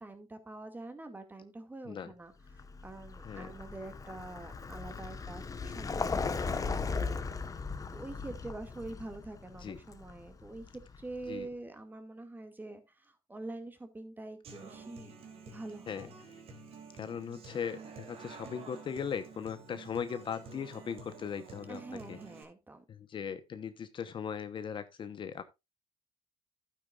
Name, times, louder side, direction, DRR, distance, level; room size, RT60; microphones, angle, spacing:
voice 1, 0.0-7.5 7.9-15.2 15.5-16.2 21.7-22.9, right 2 dB, 15° right, 2.2 m, -46 dB
Vehicle, 2.5-11.3, left 4 dB, 30° left, 1.2 m, -38 dB
Human voice / Acoustic guitar, 14.4-22.4, right 4 dB, 55° right, 3.3 m, -50 dB
voice 2, 16.9-22.2 22.9-25.4, left 7 dB, 45° left, 1.0 m, -39 dB
11.5 x 9.3 x 2.5 m
cardioid pair, 95°, 12 cm